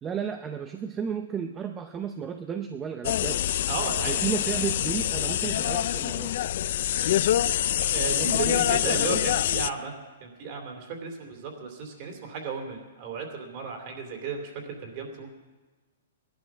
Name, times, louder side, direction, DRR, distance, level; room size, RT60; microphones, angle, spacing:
voice 1, 0.0-3.4 4.0-6.3 8.2-9.2, right 7 dB, 15° right, 6 dB, 0.6 m, -33 dB
sound 1, 3.0-9.7, left 12 dB, 50° left, 0.4 m, -25 dB
voice 2, 3.7-4.5 7.8-9.9 10.2-15.3, right 5 dB, 35° right, 3 dB, 2.8 m, -34 dB
17.5 x 11.5 x 6.1 m, 1.3 s
hypercardioid pair, 165°, 0 cm